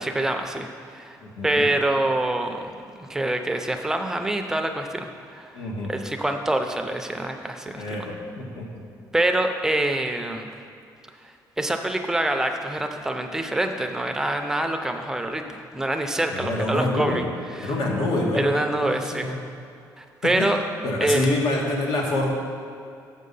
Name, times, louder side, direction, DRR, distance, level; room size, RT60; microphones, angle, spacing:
voice 1, 0.0-1.2 1.4-5.5 5.9-7.8 9.1-10.5 11.6-17.2 17.6-17.7 18.3-19.4 20.0-20.6 21.0-21.2, right 1 dB, 5° right, 5 dB, 0.5 m, -25 dB
voice 2, 1.2-1.6 5.5-5.9 7.8-8.0 8.4-8.6 16.3-17.2 17.6-19.3 20.2-20.5 20.8-22.3, left 2 dB, 85° left, -1 dB, 1.6 m, -26 dB
7.5 x 6.3 x 5.4 m, 2.5 s
cardioid pair, 160°, 7 cm